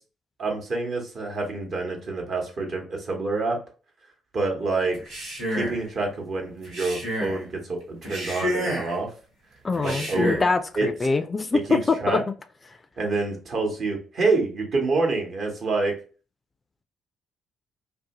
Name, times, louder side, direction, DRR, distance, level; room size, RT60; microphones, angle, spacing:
voice 1, 0.4-3.6 4.3-5.0 5.5-9.1 9.8-10.4 10.8-10.9 11.7-12.2 13.0-15.9, right 3 dB, 55° right, 1 dB, 0.9 m, -27 dB
Male speech man speaking, 4.9-5.8 6.6-7.4 8.0-9.0 9.7-10.5, equal, 70° right, 1.2 m, -30 dB
voice 2, 9.6-12.2 12.7-12.8, left 4 dB, 30° left, 9 dB, 0.3 m, -24 dB
2.6 x 2.1 x 2.8 m, 0.37 s
hypercardioid pair, 45°, 0 cm